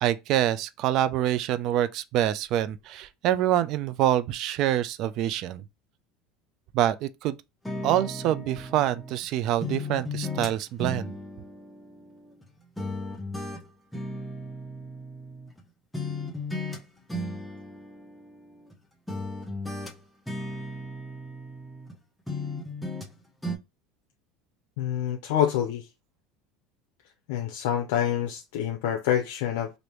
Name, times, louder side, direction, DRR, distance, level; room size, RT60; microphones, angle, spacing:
voice 1, 0.0-5.6 6.7-7.4 7.8-11.2, right 12 dB, 55° right, 0.3 m, -26 dB
sound 1, 7.6-9.2 9.6-12.5 12.8-15.6 15.9-16.8 17.1-18.7 19.1-22.0 22.3-23.1 23.4-23.6, left 1 dB, 5° left, 0.7 m, -36 dB
voice 2, 24.8-25.8 27.3-29.7, left 10 dB, 80° left, 0.5 m, -27 dB
3.3 x 2.6 x 3.0 m
supercardioid pair, 130°, 0 cm